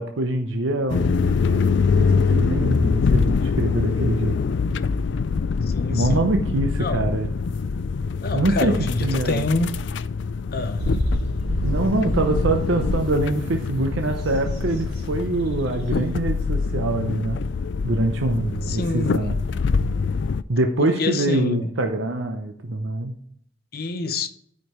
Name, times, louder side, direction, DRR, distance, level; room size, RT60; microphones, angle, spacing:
voice 1, 0.0-4.4 5.9-7.3 8.3-8.7 9.0-9.4 11.6-17.4 17.8-19.3 20.5-23.1, right 2 dB, 85° right, 0.8 m, -24 dB
sound 1, 0.9-20.4, left 5 dB, 70° left, 0.4 m, -24 dB
voice 2, 5.7-6.2 6.8-7.1 8.2-9.7 10.5-10.8 18.7-19.4 20.8-21.7 23.7-24.3, left 3 dB, 50° left, 0.8 m, -26 dB
sound 2, 10.8-16.1, equal, 30° right, 3.0 m, -29 dB
13.0 x 5.1 x 3.1 m
head